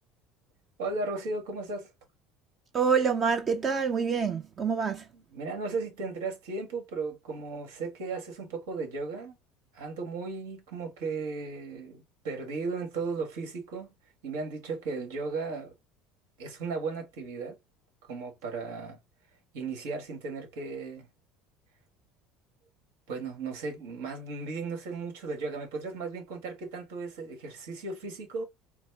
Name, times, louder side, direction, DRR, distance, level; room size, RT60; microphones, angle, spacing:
voice 1, 0.8-1.9 5.1-9.4 9.7-13.9 14.2-15.7 16.4-17.6 18.1-19.0 19.5-21.1 23.1-28.4, right 4 dB, 80° right, 1.6 m, -35 dB
voice 2, 2.7-5.1, right 6 dB, 40° right, 0.6 m, -26 dB
4.0 x 2.1 x 3.3 m
supercardioid pair, 90°, 0 cm